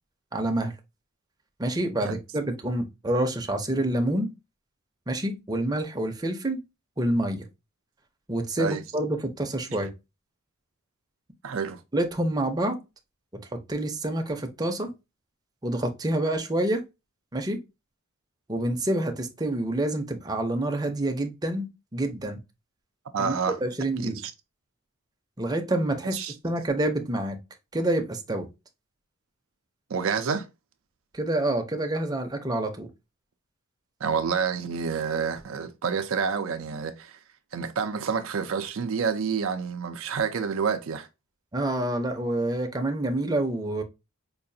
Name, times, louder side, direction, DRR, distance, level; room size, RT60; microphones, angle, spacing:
voice 1, 0.3-0.7 1.6-4.3 5.1-6.6 7.0-7.4 8.3-9.9 11.9-12.8 13.7-14.9 15.6-16.8 17.3-17.6 18.5-22.4 23.2-23.3 23.6-24.2 25.4-26.2 26.4-27.4 27.7-28.5 31.1-32.9 41.5-43.8, right 1 dB, 20° right, 0.6 m, -27 dB
voice 2, 11.4-11.8 23.1-23.6 24.0-24.3 26.1-26.3 29.9-30.5 34.0-37.2 37.5-41.1, right 6 dB, 70° right, 0.5 m, -28 dB
4.7 x 2.5 x 2.6 m
head